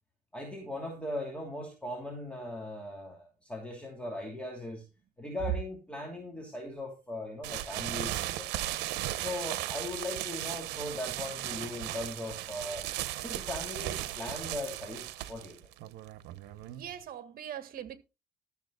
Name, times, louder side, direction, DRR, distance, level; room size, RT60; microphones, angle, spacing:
voice 1, 0.3-4.8 5.2-8.7 9.2-12.9 13.1-15.6, left 1 dB, 5° left, 2.7 m, -39 dB
sound 1, 7.4-17.0, right 15 dB, 90° right, 0.9 m, -37 dB
voice 2, 16.7-18.0, right 10 dB, 60° right, 1.7 m, -42 dB
13.0 x 7.2 x 3.9 m
cardioid pair, 110°, 17 cm